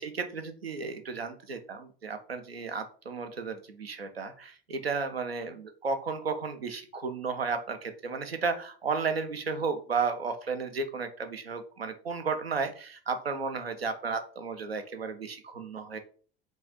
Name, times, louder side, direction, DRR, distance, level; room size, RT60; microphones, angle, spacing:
voice 1, 0.0-16.0, right 4 dB, 90° right, 8 dB, 0.5 m, -33 dB
4.5 x 2.3 x 2.8 m, 0.41 s
figure-of-eight pair, 65°, 29 cm